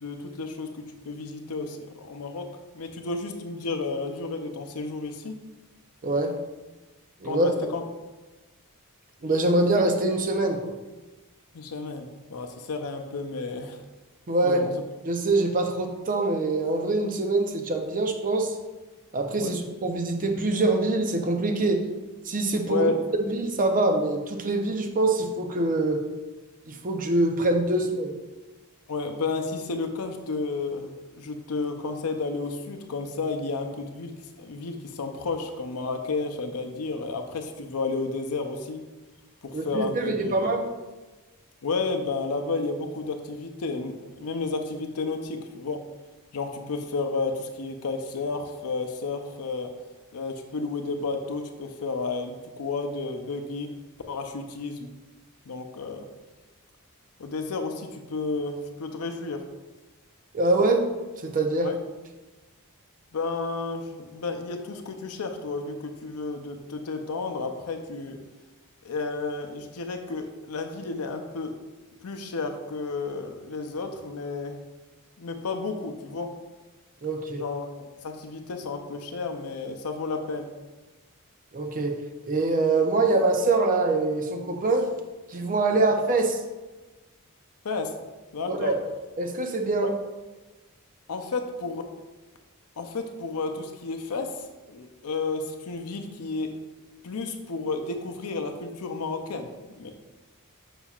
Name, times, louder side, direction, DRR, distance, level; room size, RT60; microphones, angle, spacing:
voice 1, 0.0-2.5 2.7-5.4 7.2-7.8 11.5-13.8 14.4-14.7 19.4-19.6 22.7-23.0 28.9-38.8 39.4-40.6 41.6-45.8 46.3-49.7 50.1-53.7 54.1-54.9 55.5-56.0 57.2-59.4 61.6-61.8 63.1-68.2 68.8-71.6 72.0-74.6 75.2-76.3 77.4-80.5 85.7-85.9 87.6-87.9 88.3-88.7 89.8-89.9 91.1-91.8 92.8-96.5 97.0-99.5 99.8-99.9, left 3 dB, 90° left, 5 dB, 0.6 m, -32 dB
voice 2, 6.0-6.3 7.2-7.5 9.2-10.7 14.3-14.7 15.1-18.5 19.1-21.8 22.2-22.9 23.2-26.1 26.7-28.1 39.5-40.7 60.3-60.9 61.2-61.7 77.0-77.4 81.5-81.9 82.2-84.9 85.3-86.4 88.5-88.8 89.2-89.9, right 2 dB, 40° right, 4 dB, 0.6 m, -24 dB
7.0 x 5.6 x 2.4 m, 1.2 s
head